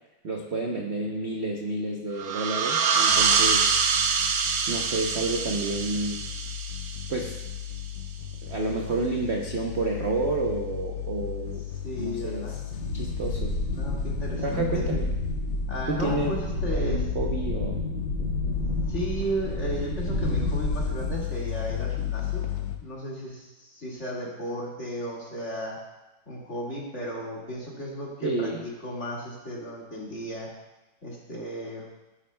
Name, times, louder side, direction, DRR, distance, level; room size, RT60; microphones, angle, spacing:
voice 1, 0.2-3.7 4.7-6.2 7.1-7.4 8.4-11.6 12.0-12.5 12.9-13.6 14.4-15.1 15.9-16.3 16.7-17.8 28.2-28.6, right 3 dB, 55° right, 0 dB, 0.7 m, -30 dB
sound 1, 2.2-7.5, right 6 dB, 75° right, 1.6 m, -25 dB
sound 2, 3.1-22.8, left 12 dB, 75° left, 1.5 m, -36 dB
voice 2, 11.8-12.6 13.7-14.9 15.7-17.1 18.9-22.4 22.8-25.8 26.3-30.5 31.0-31.9, equal, 35° left, -4 dB, 2.1 m, -34 dB
sound 3, 12.7-21.2, left 2 dB, 60° left, 2.6 m, -29 dB
14.0 x 10.0 x 2.2 m, 1.0 s
omnidirectional pair, 2.2 m